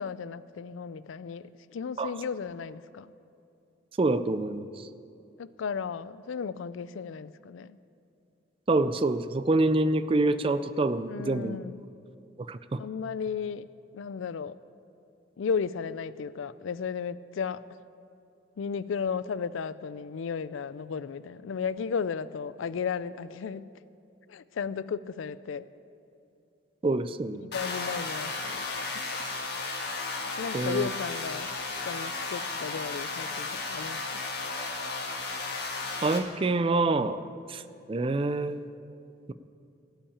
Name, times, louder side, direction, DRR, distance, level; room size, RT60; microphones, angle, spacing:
voice 1, 0.0-1.4 1.7-3.1 5.4-7.8 11.1-11.8 12.8-13.7 13.9-14.5 15.4-17.6 18.6-23.7 24.3-25.7 27.4-28.7 30.4-31.5 31.9-34.2, left 6 dB, 85° left, 16 dB, 0.4 m, -34 dB
voice 2, 4.0-4.9 8.7-11.6 12.4-12.8 26.8-27.4 30.5-30.9 36.0-37.2 37.5-37.6 37.9-38.6, right 2 dB, 30° right, 13 dB, 0.4 m, -26 dB
sound 1, 27.5-36.2, left 3 dB, 55° left, 1.7 m, -34 dB
16.5 x 5.7 x 8.6 m, 2.6 s
head